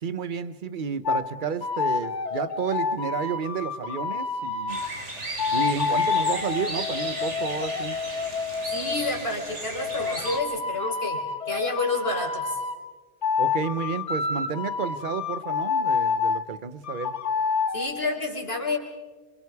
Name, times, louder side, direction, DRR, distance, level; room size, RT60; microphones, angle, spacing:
voice 1, 0.0-4.8 5.5-8.0 13.4-17.2, right 6 dB, 50° right, 13 dB, 1.1 m, -31 dB
sound 1, 1.1-1.3 1.6-4.9 5.4-9.1 9.8-12.8 13.2-16.4 16.8-17.9, left 5 dB, 80° left, 1.6 m, -28 dB
sound 2, 4.7-10.4, right 2 dB, 90° right, 3.5 m, -35 dB
voice 2, 8.6-11.2 11.5-12.6 17.7-18.8, left 3 dB, 60° left, 0 dB, 4.5 m, -29 dB
28.0 x 27.0 x 4.8 m, 1.3 s
omnidirectional pair, 1.2 m